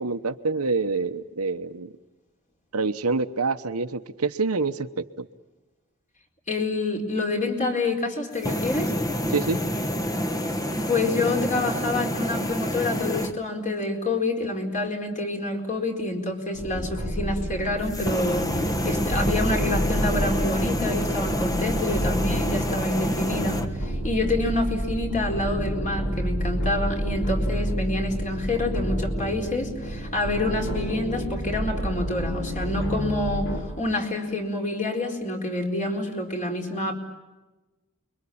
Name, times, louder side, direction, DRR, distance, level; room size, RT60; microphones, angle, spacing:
voice 1, 0.0-1.9 2.7-5.3 9.3-9.6, right 4 dB, 75° right, 9 dB, 1.1 m, -26 dB
voice 2, 6.5-8.9 10.9-36.9, left 2 dB, 35° left, 2 dB, 4.4 m, -27 dB
sound 1, 8.3-13.3 17.8-23.7, equal, 15° left, 1.3 m, -28 dB
sound 2, 16.5-33.6, equal, 60° left, 6.0 m, -29 dB
29.5 x 23.0 x 8.6 m, 1.1 s
head